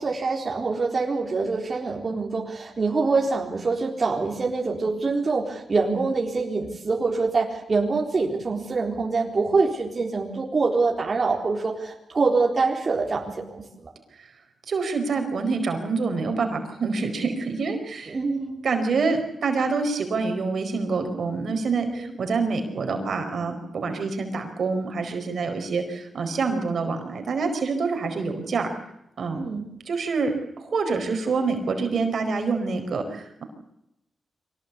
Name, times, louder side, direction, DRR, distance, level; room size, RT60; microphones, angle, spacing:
voice 1, 0.0-13.9 18.1-18.6 21.9-22.1 29.3-29.6, right 4 dB, 45° right, 0 dB, 3.9 m, -25 dB
voice 2, 14.7-18.2 18.6-28.7 29.2-29.4 29.9-33.4, right 4 dB, 70° right, 6 dB, 4.7 m, -26 dB
24.0 x 19.0 x 8.4 m, 0.83 s
cardioid pair, 70°, 0 cm